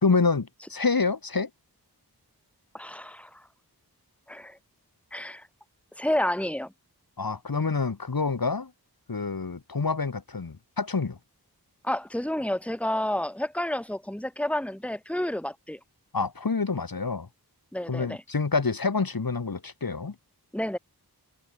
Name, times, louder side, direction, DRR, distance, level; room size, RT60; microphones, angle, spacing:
voice 1, 0.0-1.5 7.2-8.7 9.1-11.2 16.1-17.3 17.9-20.1, left 4 dB, 60° left, 1.6 m, -27 dB
voice 2, 2.7-3.4 4.3-4.6 5.1-5.5 6.0-6.7 11.8-15.8 17.7-18.2 20.5-20.8, left 1 dB, 5° left, 1.9 m, -30 dB
wide cardioid pair, 45°, 39 cm